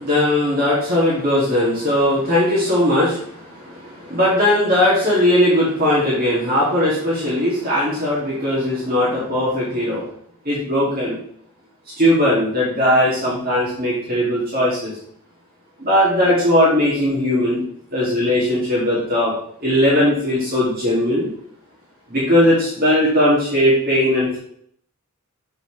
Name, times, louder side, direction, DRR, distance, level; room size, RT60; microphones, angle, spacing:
voice 1, 0.0-10.1 10.4-11.2 12.0-14.9 15.8-17.6 17.9-19.3 19.6-21.3 22.1-24.4, left 1 dB, 40° right, -8 dB, 2.6 m, -18 dB
7.6 x 5.6 x 3.3 m, 0.65 s
head